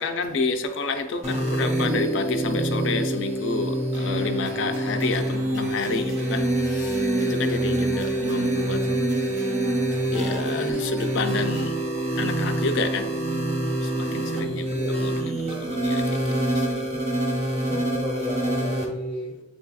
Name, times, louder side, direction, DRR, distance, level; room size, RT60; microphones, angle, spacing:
voice 1, 0.0-8.9 10.1-11.8 12.2-13.2 13.8-16.9, left 4 dB, 75° left, 0.4 m, -30 dB
sound 1, 1.2-18.9, right 1 dB, 35° right, 0.9 m, -26 dB
sound 2, 3.9-11.7, right 2 dB, 65° right, 0.6 m, -41 dB
voice 2, 13.9-15.0 16.5-17.1 17.5-19.4, left 1 dB, 10° left, 0.5 m, -34 dB
6.8 x 2.7 x 2.2 m
head